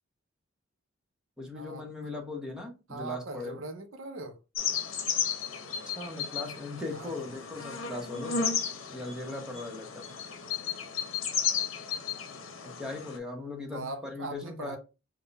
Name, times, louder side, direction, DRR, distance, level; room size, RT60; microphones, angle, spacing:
voice 1, 1.4-3.6 5.8-8.4 8.9-10.1 12.6-14.8, left 2 dB, 5° right, 0.9 m, -39 dB
voice 2, 2.9-4.4 6.9-7.3 13.7-14.8, right 3 dB, 80° right, 0.6 m, -40 dB
sound 1, 4.5-13.2, left 7 dB, 80° left, 0.8 m, -34 dB
3.7 x 2.2 x 3.9 m
head